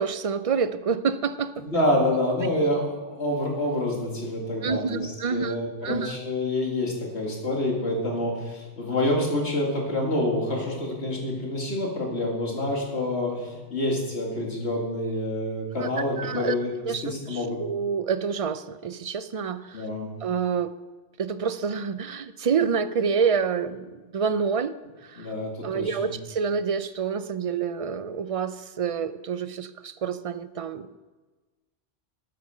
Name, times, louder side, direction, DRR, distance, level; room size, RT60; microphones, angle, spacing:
voice 1, 0.0-1.6 4.6-5.6 5.8-6.2 15.8-15.9 16.2-16.6 16.8-19.9 20.2-20.8 21.2-24.8 25.0-25.3 25.6-30.9, right 6 dB, 45° right, 13 dB, 0.5 m, -28 dB
voice 2, 1.7-16.7 17.0-17.6 19.7-20.2 25.2-26.1, left 1 dB, 90° left, -2 dB, 2.8 m, -27 dB
11.0 x 9.3 x 6.6 m, 1.3 s
omnidirectional pair, 1.1 m